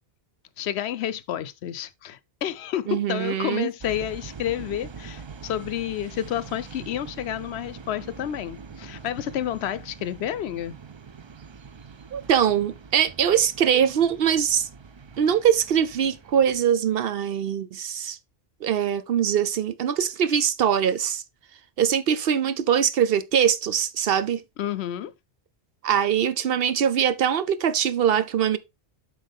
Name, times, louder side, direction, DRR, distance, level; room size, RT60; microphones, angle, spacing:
voice 1, 0.6-10.7 24.6-25.1, left 11 dB, 80° left, 0.9 m, -30 dB
voice 2, 2.9-3.7 12.1-14.7 15.2-18.2 18.6-21.2 21.8-24.4 25.8-28.6, right 8 dB, 65° right, 0.8 m, -22 dB
sound 1, 3.8-16.6, right 5 dB, 45° right, 0.4 m, -43 dB
7.7 x 4.8 x 3.5 m
omnidirectional pair, 1.1 m